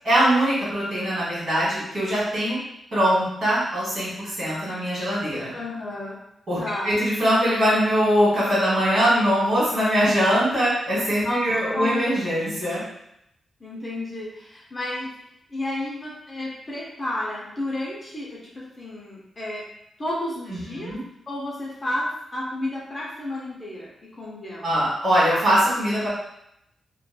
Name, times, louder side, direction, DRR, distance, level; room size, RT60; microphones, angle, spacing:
voice 1, 0.0-2.6 2.9-5.5 6.5-6.6 6.8-12.8 20.7-21.0 24.6-26.1, equal, 45° right, -7 dB, 1.3 m, -22 dB
voice 2, 5.5-6.2 6.6-6.9 11.2-11.4 11.7-12.2 13.6-15.1 15.5-19.7 20.0-24.7, left 1 dB, 20° left, -5 dB, 0.5 m, -31 dB
2.8 x 2.2 x 2.2 m, 0.80 s
wide cardioid pair, 160°, 0 cm